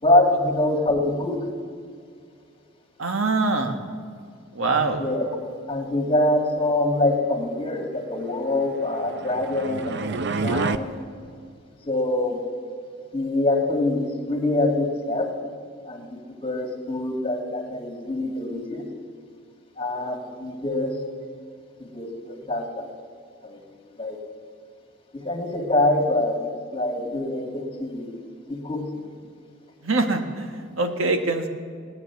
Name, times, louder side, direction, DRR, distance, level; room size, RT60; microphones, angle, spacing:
voice 1, 0.0-1.5 5.0-5.3 5.7-11.0 11.9-12.4 13.1-15.3 15.9-18.9 19.8-21.0 21.8-22.9 23.4-23.7 24.0-24.2 25.1-28.2 28.5-29.1, left 2 dB, 30° left, 2 dB, 2.1 m, -25 dB
voice 2, 3.0-3.8 4.5-5.0 29.8-30.5 30.8-31.5, right 3 dB, 85° right, 5 dB, 1.4 m, -23 dB
sound 1, 8.8-10.8, right 4 dB, 60° right, 0.6 m, -28 dB
19.0 x 9.7 x 7.1 m, 2.1 s
head